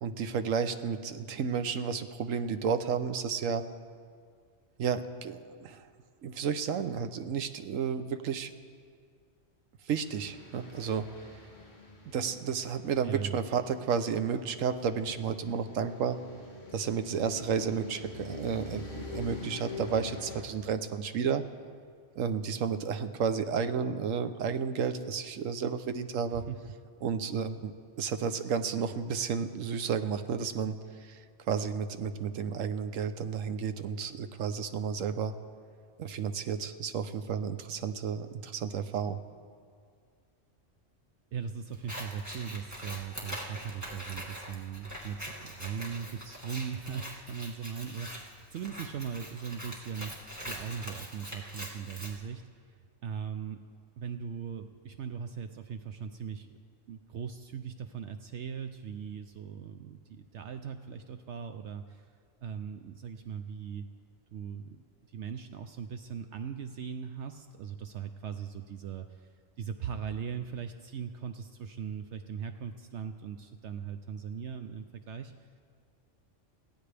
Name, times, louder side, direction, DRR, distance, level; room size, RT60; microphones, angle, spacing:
voice 1, 0.0-3.6 4.8-5.8 6.2-8.5 9.9-11.1 12.1-16.2 16.7-21.4 22.2-26.4 27.0-27.7 28.0-30.8 31.1-31.2 31.5-35.3 36.0-39.2, right 6 dB, 90° right, 9 dB, 1.1 m, -32 dB
sound 1, 10.0-20.4, left 3 dB, 45° left, 2.7 m, -45 dB
voice 2, 13.0-13.3 26.3-26.6 27.3-27.6 41.3-53.6 54.0-56.6 56.9-62.1 62.4-63.9 64.3-64.8 65.1-69.3 69.6-75.5, right 7 dB, 70° right, 8 dB, 0.9 m, -39 dB
Scissors, 41.7-52.1, equal, 15° right, 2.0 m, -43 dB
22.0 x 16.0 x 3.4 m, 2.1 s
omnidirectional pair, 1.3 m